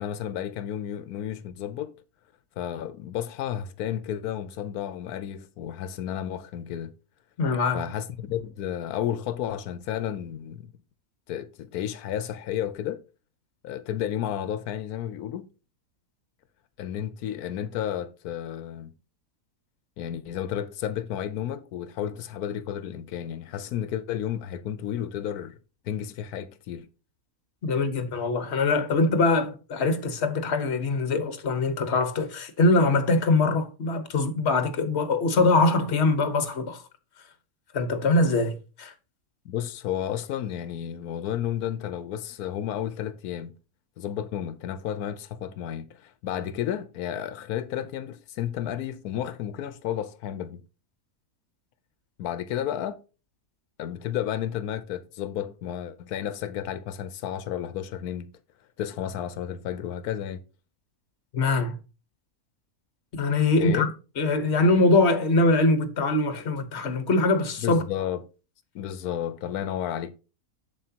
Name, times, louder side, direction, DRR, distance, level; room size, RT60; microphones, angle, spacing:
voice 1, 0.0-1.9 2.6-6.9 7.7-10.7 11.3-13.0 13.6-15.5 16.8-18.9 20.0-25.6 25.8-26.9 39.4-43.5 44.0-50.6 52.2-53.0 53.8-58.3 58.8-60.4 63.6-63.9 67.6-68.2 68.7-70.1, left 10 dB, 90° left, 1.2 m, -32 dB
voice 2, 7.4-7.8 27.6-36.8 37.7-38.9 61.3-61.7 63.1-63.9 64.2-67.8, left 3 dB, 50° left, 1.4 m, -23 dB
7.5 x 7.3 x 2.8 m
omnidirectional pair, 1.6 m